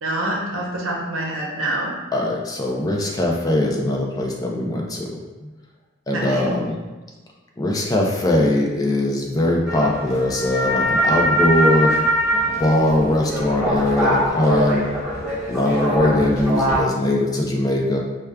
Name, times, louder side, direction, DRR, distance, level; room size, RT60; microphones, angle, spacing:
voice 1, 0.0-1.9 6.1-6.5, right 1 dB, 85° right, -2 dB, 0.7 m, -26 dB
voice 2, 2.1-5.5 6.1-6.8 7.6-12.0 12.6-14.9 15.5-18.0, left 1 dB, 20° left, -1 dB, 0.4 m, -21 dB
sound 1, 9.7-16.8, equal, 5° right, 1.1 m, -22 dB
4.8 x 2.3 x 2.2 m, 1.2 s
head